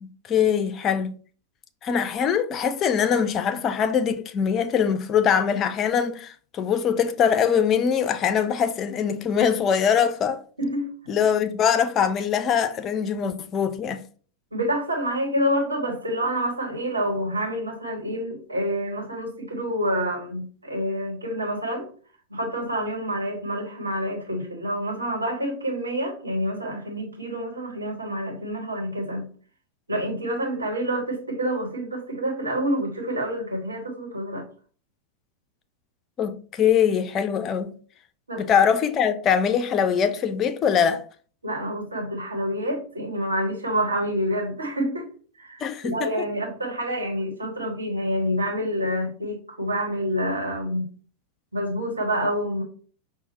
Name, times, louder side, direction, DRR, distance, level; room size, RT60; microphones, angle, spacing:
voice 1, 0.0-1.1 1.8-10.4 11.1-14.0 36.2-37.7 38.4-41.0 45.6-46.1, left 7 dB, 30° left, 0.4 m, -22 dB
voice 2, 10.6-10.9 14.5-21.9 22.3-29.3 29.9-34.5 38.3-38.4 41.4-45.1 45.4-50.9 51.5-52.6, equal, 80° right, 1.3 m, -27 dB
5.7 x 2.3 x 4.1 m
figure-of-eight pair, 90°, 0 cm